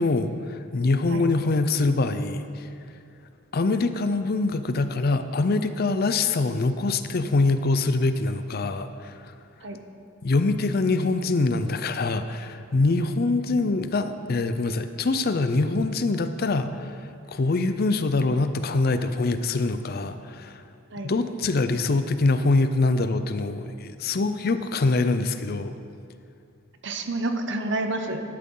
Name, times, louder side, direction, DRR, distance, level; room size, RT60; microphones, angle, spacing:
voice 1, 0.0-2.7 3.5-9.3 10.2-17.0 17.3-20.6 21.0-25.7, left 3 dB, 50° left, 10 dB, 0.5 m, -24 dB
voice 2, 26.8-28.2, right 2 dB, 60° right, 6 dB, 0.9 m, -29 dB
12.0 x 11.0 x 3.8 m, 2.4 s
head